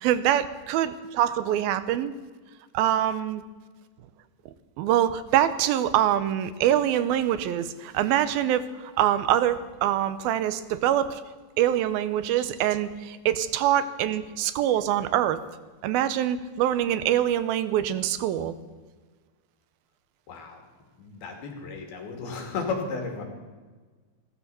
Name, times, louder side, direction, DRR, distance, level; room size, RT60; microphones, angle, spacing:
voice 1, 0.0-2.1 2.7-3.4 4.8-11.2 11.6-15.4 15.8-18.5, right 11 dB, 80° right, 13 dB, 2.6 m, -24 dB
voice 2, 20.3-20.6 21.0-23.2, left 4 dB, 80° left, 3 dB, 4.3 m, -33 dB
16.0 x 13.0 x 6.9 m, 1.4 s
omnidirectional pair, 4.3 m